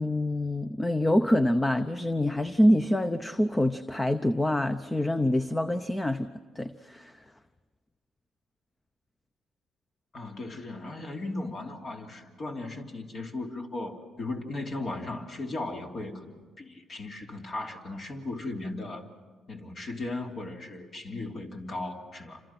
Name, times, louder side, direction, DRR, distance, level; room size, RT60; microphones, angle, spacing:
voice 1, 0.0-6.3 6.6-7.2, left 1 dB, 15° left, 10 dB, 0.8 m, -26 dB
voice 2, 10.1-19.1 19.5-22.4, left 2 dB, 45° left, 1 dB, 3.1 m, -37 dB
29.0 x 26.0 x 6.0 m, 1.4 s
cardioid pair, 105°, 0 cm